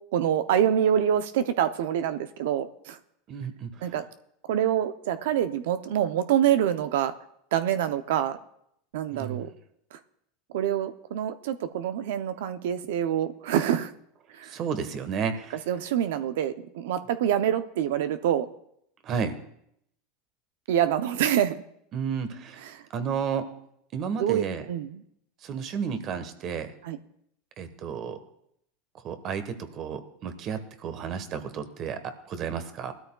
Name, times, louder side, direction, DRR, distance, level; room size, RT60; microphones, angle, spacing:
voice 1, 0.1-3.0 3.8-4.0 4.4-7.1 7.5-8.4 8.9-9.5 9.9-10.0 10.5-13.9 14.3-14.6 15.7-18.5 20.7-21.6 22.6-22.9 24.2-25.0 26.8-27.0, right 10 dB, 80° right, 10 dB, 0.6 m, -26 dB
voice 2, 3.3-3.9 9.1-9.4 14.4-15.6 19.0-19.4 21.9-22.6 22.9-23.5 23.9-24.6 25.4-26.7 27.6-28.2 29.0-32.9, right 6 dB, 45° right, 9 dB, 1.2 m, -32 dB
19.5 x 12.5 x 2.3 m, 0.74 s
supercardioid pair, 115°, 0 cm